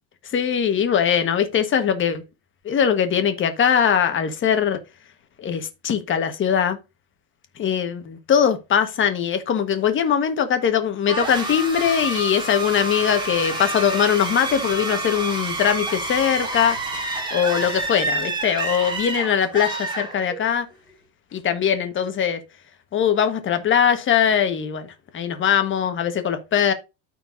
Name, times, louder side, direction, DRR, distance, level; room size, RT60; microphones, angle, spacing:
voice 1, 0.3-2.2 2.6-4.8 5.4-6.8 7.6-20.7 21.3-22.4 22.9-26.7, left 8 dB, 25° left, 1.3 m, -21 dB
sound 1, 11.0-20.6, right 2 dB, 10° right, 2.2 m, -28 dB
13.5 x 4.5 x 2.6 m
cardioid pair, 150°, 43 cm